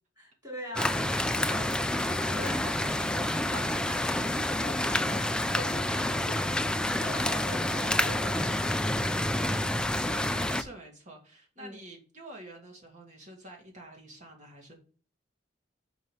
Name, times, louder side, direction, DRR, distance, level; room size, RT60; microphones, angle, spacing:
voice 1, 0.2-9.0 11.6-11.8, equal, 20° right, 3.8 m, -43 dB
sound 1, 0.8-10.6, left 1 dB, 5° left, 0.3 m, -28 dB
voice 2, 9.5-14.7, right 2 dB, 45° right, 2.1 m, -48 dB
5.5 x 4.7 x 5.5 m
head